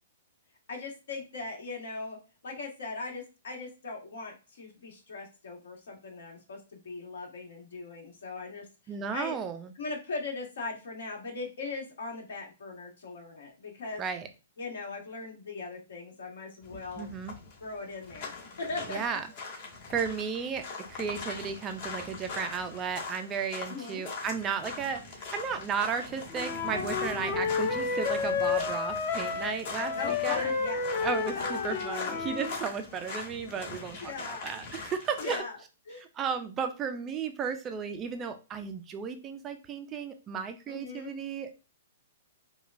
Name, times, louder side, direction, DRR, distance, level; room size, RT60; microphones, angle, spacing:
voice 1, 0.7-2.2 2.4-9.4 9.7-14.0 14.6-17.1 17.6-19.2 23.7-24.1 29.9-31.1 31.3-32.3 34.0-34.5 35.2-35.6 35.9-36.1 40.7-41.1, left 3 dB, 75° left, 1 dB, 1.4 m, -39 dB
voice 2, 8.9-9.7 14.0-14.3 17.0-17.3 18.9-19.2 19.9-30.5 31.0-35.4 36.0-41.6, right 6 dB, 15° right, 7 dB, 0.3 m, -34 dB
sound 1, 16.6-35.4, left 4 dB, 50° left, 1.2 m, -41 dB
Wind instrument woodwind instrument, 26.3-32.6, left 5 dB, 35° left, 0.6 m, -31 dB
4.9 x 2.2 x 2.5 m, 0.31 s
hypercardioid pair, 165°, 0 cm